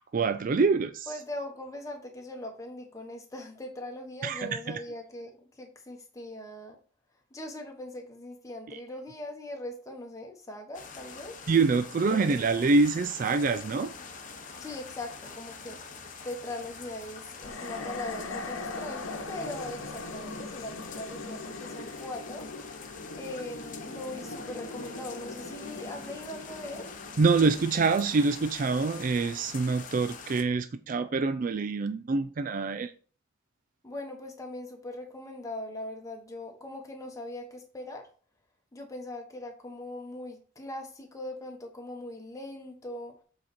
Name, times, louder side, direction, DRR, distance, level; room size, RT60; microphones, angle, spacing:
voice 1, 0.1-1.1 4.2-4.8 8.7-8.8 11.5-13.9 27.2-32.9, right 4 dB, 40° right, 10 dB, 0.4 m, -26 dB
voice 2, 1.1-6.8 7.3-11.4 12.1-12.5 14.6-22.5 23.2-26.9 33.8-38.1 38.7-43.1, left 1 dB, 15° left, 2 dB, 1.3 m, -40 dB
sound 1, 10.7-30.4, left 5 dB, 40° left, 0.9 m, -45 dB
sound 2, 17.4-28.8, left 3 dB, 75° left, 1.0 m, -41 dB
7.6 x 4.0 x 4.3 m, 0.40 s
head